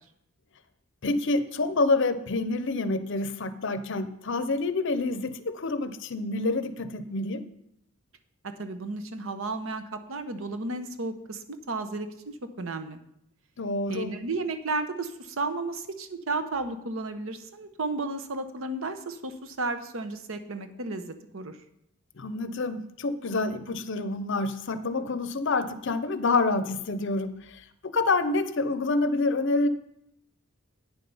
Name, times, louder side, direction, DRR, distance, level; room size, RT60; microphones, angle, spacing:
voice 1, 1.0-7.4 13.6-14.1 22.2-29.7, left 3 dB, 55° left, 12 dB, 0.6 m, -27 dB
voice 2, 8.4-13.0 13.9-21.6, right 3 dB, 65° right, 9 dB, 0.9 m, -33 dB
9.2 x 7.5 x 5.5 m, 0.76 s
head